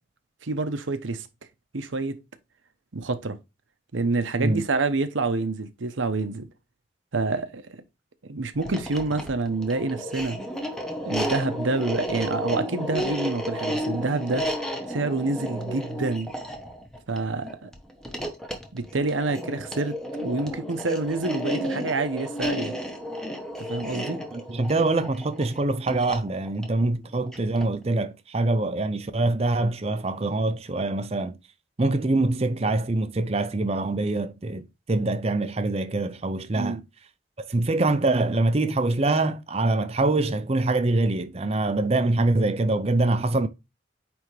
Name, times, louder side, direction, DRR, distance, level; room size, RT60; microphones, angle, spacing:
voice 1, 0.4-1.3 1.7-2.2 2.9-3.4 3.9-6.5 7.1-7.8 8.3-10.4 11.0-14.5 14.9-16.3 17.1-17.7 18.7-22.7 23.6-24.2 26.8-27.0 36.5-36.8, right 3 dB, 90° right, 0.9 m, -27 dB
sound 1, 8.5-27.8, equal, 5° left, 1.0 m, -32 dB
voice 2, 24.3-31.4 31.8-36.8 37.4-43.5, right 2 dB, 35° right, 0.6 m, -24 dB
8.8 x 3.5 x 3.2 m
head